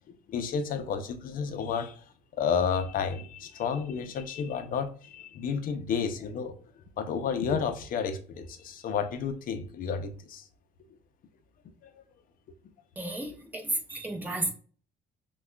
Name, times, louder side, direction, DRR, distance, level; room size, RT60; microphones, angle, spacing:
voice 1, 0.1-1.9 2.4-6.5 7.0-10.4, left 6 dB, 55° left, 9 dB, 0.6 m, -31 dB
voice 2, 13.0-14.5, right 1 dB, 10° right, 2 dB, 1.0 m, -32 dB
5.9 x 2.3 x 2.2 m, 0.41 s
cardioid pair, 110°, 17 cm